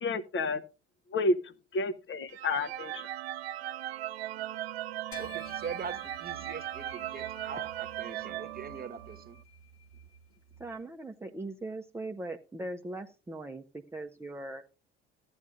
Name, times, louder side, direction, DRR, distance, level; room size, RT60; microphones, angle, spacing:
voice 1, 0.0-0.6 1.1-3.1, left 2 dB, 40° left, 0.9 m, -30 dB
sound 1, 2.3-9.3, right 13 dB, 85° right, 0.5 m, -38 dB
sound 2, 5.1-10.7, left 1 dB, 85° left, 1.4 m, -51 dB
voice 2, 5.2-9.4, right 6 dB, 30° right, 1.2 m, -42 dB
voice 3, 10.6-14.6, right 2 dB, 10° right, 0.7 m, -40 dB
14.5 x 9.6 x 2.5 m
hypercardioid pair, 60°, 31 cm